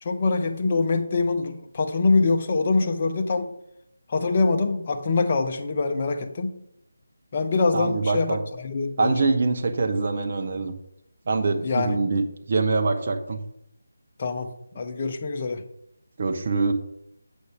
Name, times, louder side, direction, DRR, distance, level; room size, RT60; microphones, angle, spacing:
voice 1, 0.0-3.5 4.1-6.5 7.3-9.3 11.6-12.0 14.2-15.6, left 3 dB, 35° left, 6 dB, 0.8 m, -24 dB
voice 2, 7.7-8.4 9.0-10.7 11.3-13.4 16.2-16.7, right 3 dB, 40° right, 5 dB, 0.9 m, -24 dB
8.0 x 6.1 x 3.4 m, 0.77 s
figure-of-eight pair, 155°, 0 cm